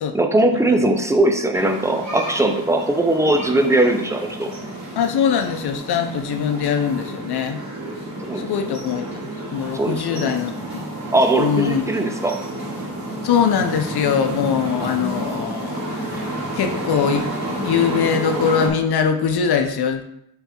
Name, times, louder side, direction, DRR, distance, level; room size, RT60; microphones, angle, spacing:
voice 1, 0.1-4.5 8.2-8.5 9.7-10.4 11.1-12.4, right 1 dB, 10° right, 5 dB, 0.6 m, -19 dB
sound 1, 1.5-18.7, right 1 dB, 45° right, 2.5 m, -30 dB
voice 2, 5.0-7.6 8.4-9.0 9.5-10.8 11.4-11.8 13.2-16.3 16.5-17.2 17.6-20.0, left 7 dB, 80° left, 6 dB, 0.7 m, -22 dB
5.7 x 4.2 x 4.3 m, 0.80 s
wide cardioid pair, 140°, 38 cm